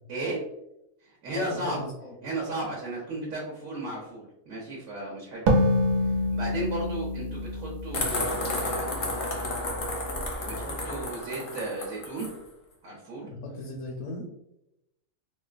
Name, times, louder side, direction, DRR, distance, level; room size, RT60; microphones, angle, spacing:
voice 1, 0.1-0.4 1.0-1.8 2.2-5.7 6.3-8.9 10.4-12.3 12.8-13.3, right 2 dB, 65° right, -3 dB, 1.1 m, -35 dB
voice 2, 1.3-2.1 5.5-5.8 13.3-14.3, left 2 dB, 70° left, 0 dB, 0.9 m, -36 dB
sound 1, 5.5-8.9, left 1 dB, 85° right, 1.2 m, -26 dB
sound 2, 7.9-12.3, left 2 dB, 50° left, 0.6 m, -32 dB
4.4 x 2.1 x 2.4 m, 0.84 s
omnidirectional pair, 1.7 m